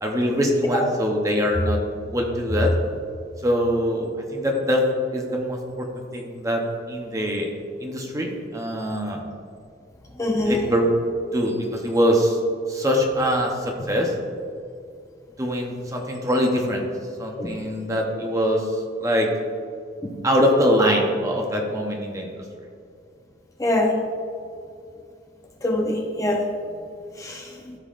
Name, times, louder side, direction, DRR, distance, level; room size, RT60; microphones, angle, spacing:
voice 1, 0.0-1.8 2.1-2.7 3.4-4.9 5.1-5.9 6.1-6.6 6.9-7.5 7.8-9.2 10.4-10.9 11.3-12.4 12.7-14.1 15.4-16.8 17.2-18.7 19.0-19.3 20.2-22.4, equal, 20° right, 1 dB, 0.8 m, -23 dB
voice 2, 10.2-10.6 17.4-17.5 20.0-20.1 23.6-23.9 25.6-26.4 27.2-27.7, left 1 dB, 15° left, 0 dB, 0.7 m, -24 dB
14.0 x 5.5 x 2.5 m, 2.5 s
head